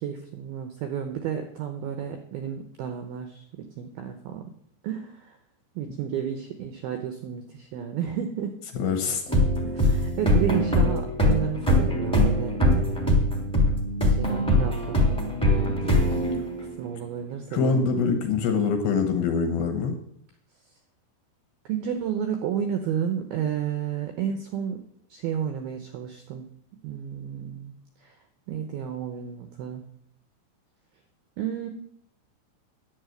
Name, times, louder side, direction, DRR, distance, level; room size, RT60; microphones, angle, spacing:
voice 1, 0.0-4.4 4.8-5.4 5.8-8.5 9.6-13.2 14.0-16.2 16.8-17.8 21.7-24.8 25.1-26.5 26.8-27.7 28.0-28.1 28.5-29.8 31.4-31.7, right 8 dB, 85° right, 6 dB, 2.2 m, -32 dB
voice 2, 8.7-9.2 17.5-20.0, left 5 dB, 70° left, 6 dB, 2.5 m, -24 dB
sound 1, 9.3-16.9, left 1 dB, 5° left, 1.1 m, -22 dB
11.0 x 8.4 x 7.9 m, 0.67 s
omnidirectional pair, 5.6 m